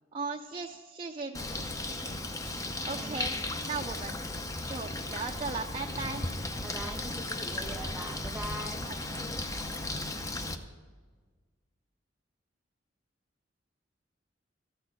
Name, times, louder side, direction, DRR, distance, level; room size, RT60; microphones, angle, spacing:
voice 1, 0.1-2.2 2.8-3.3 3.7-4.2 4.7-6.2 8.8-9.2, right 4 dB, 30° right, 2 dB, 0.5 m, -38 dB
Bird, 1.3-10.5, left 2 dB, 15° left, 0.6 m, -36 dB
voice 2, 6.6-8.9, right 1 dB, 5° right, 6 dB, 1.0 m, -42 dB
14.0 x 6.4 x 7.7 m, 1.5 s
head